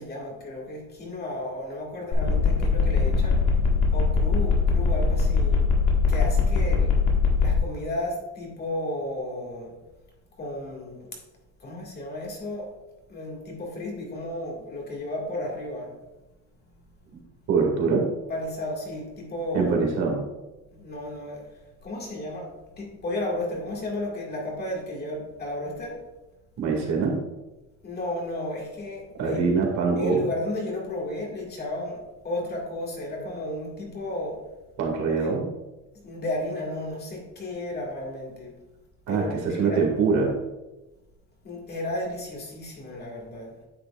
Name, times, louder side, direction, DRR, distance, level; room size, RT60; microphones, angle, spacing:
voice 1, 0.0-3.4 3.9-5.6 6.1-6.9 7.4-9.7 10.4-11.1 11.6-12.7 13.1-15.9 18.3-19.8 20.7-21.4 21.8-22.5 22.8-26.0 27.8-29.4 30.0-34.4 35.2-35.3 36.0-38.5 39.1-39.8 41.4-43.5, left 1 dB, 30° left, -2 dB, 2.0 m, -33 dB
sound 1, 2.1-7.6, left 5 dB, 85° left, 1.8 m, -21 dB
voice 2, 17.5-18.0 19.5-20.2 26.6-27.1 29.2-30.2 34.8-35.4 39.1-40.3, right 4 dB, 60° right, 0 dB, 2.2 m, -23 dB
9.5 x 6.7 x 2.4 m, 1.0 s
cardioid pair, 150°, 32 cm